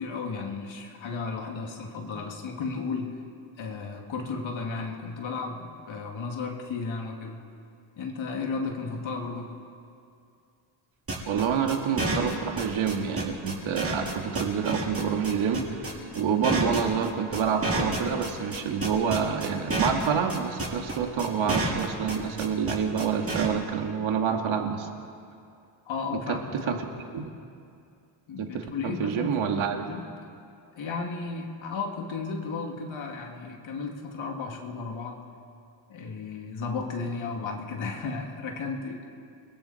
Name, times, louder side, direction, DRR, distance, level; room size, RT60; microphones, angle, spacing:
voice 1, 0.0-3.2 3.6-7.4 8.0-9.6 25.9-26.8 28.3-29.4 29.9-30.1 30.8-35.2 35.9-39.1, left 4 dB, 70° left, 1 dB, 3.0 m, -34 dB
sound 1, 11.1-23.5, right 2 dB, 30° right, 7.2 m, -29 dB
voice 2, 11.3-15.6 16.1-24.9 26.3-26.7 27.1-27.3 28.4-29.9, right 7 dB, 75° right, 3 dB, 2.3 m, -27 dB
29.5 x 21.5 x 4.5 m, 2.4 s
cardioid pair, 95°, 48 cm